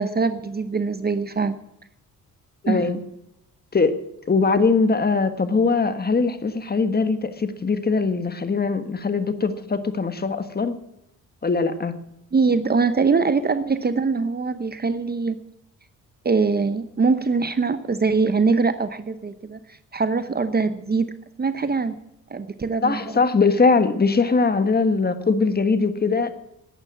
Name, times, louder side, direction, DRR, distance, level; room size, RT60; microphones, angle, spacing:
voice 1, 0.0-1.6 2.7-2.9 12.3-15.4 16.2-19.6 19.9-21.1 21.4-21.9 22.3-23.2, right 4 dB, 25° right, 12 dB, 0.9 m, -22 dB
voice 2, 2.6-3.0 3.7-4.0 4.3-10.8 11.4-11.9 22.8-26.3, left 4 dB, 25° left, 10 dB, 1.5 m, -21 dB
11.5 x 9.7 x 9.2 m, 0.84 s
cardioid pair, 95°, 35 cm